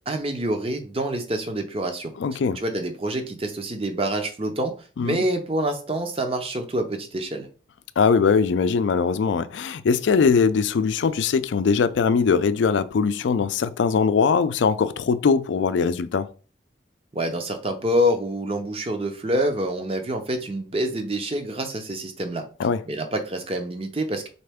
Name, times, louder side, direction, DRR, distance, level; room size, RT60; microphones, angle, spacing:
voice 1, 0.1-2.1 2.6-4.7 5.0-7.5 17.1-22.4 22.9-24.3, right 1 dB, 30° right, 0.7 m, -26 dB
voice 2, 2.2-2.6 5.0-5.2 8.0-16.3 22.6-22.8, left 5 dB, 80° left, 0.4 m, -21 dB
4.2 x 3.3 x 3.5 m
head